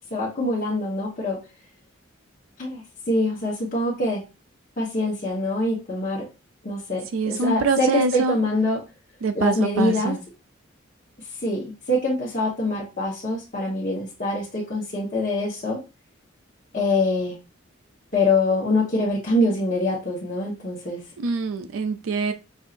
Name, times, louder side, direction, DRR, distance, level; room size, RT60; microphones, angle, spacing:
voice 1, 0.1-1.4 2.6-4.2 4.8-6.3 6.6-8.8 9.3-10.1 11.4-15.8 16.7-17.4 18.1-21.0, left 2 dB, 40° left, -6 dB, 1.1 m, -24 dB
voice 2, 7.1-8.4 9.2-10.2 21.2-22.3, right 4 dB, 80° right, 9 dB, 0.4 m, -24 dB
5.4 x 2.7 x 2.5 m, 0.28 s
head